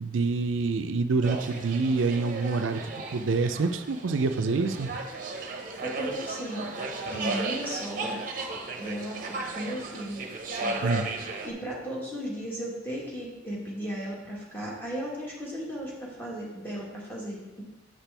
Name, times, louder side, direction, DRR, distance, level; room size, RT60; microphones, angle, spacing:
voice 1, 0.0-4.9 10.8-11.1, right 4 dB, 70° right, 9 dB, 0.4 m, -27 dB
sound 1, 1.2-11.5, right 3 dB, 45° right, 0.7 m, -35 dB
voice 2, 5.5-6.7 7.1-10.2 10.5-10.9 11.4-17.6, equal, 10° left, -5 dB, 1.5 m, -36 dB
6.4 x 5.9 x 3.4 m, 1.0 s
head